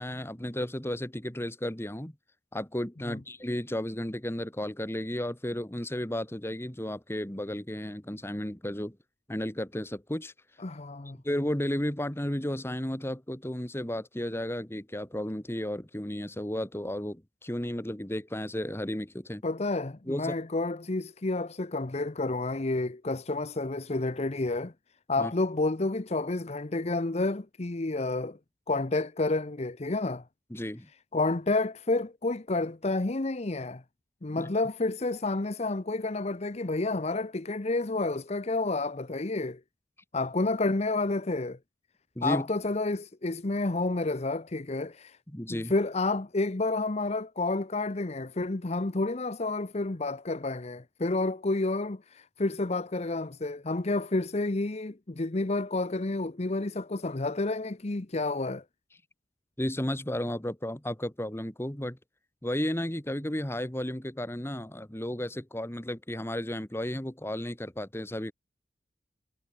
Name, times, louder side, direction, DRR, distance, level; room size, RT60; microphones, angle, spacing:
voice 1, 0.0-2.2 2.5-9.0 9.3-10.3 11.2-19.4 20.1-20.3 25.2-25.3 30.5-30.9 34.4-34.5 42.2-42.5 45.3-45.7 59.6-62.0 62.4-68.3, left 1 dB, 15° left, 1.8 m, -33 dB
voice 2, 10.6-11.2 19.4-24.7 25.1-28.4 28.7-30.2 31.1-33.8 34.2-39.6 40.1-41.6 42.2-45.2 45.5-58.6, left 2 dB, 40° left, 0.9 m, -30 dB
head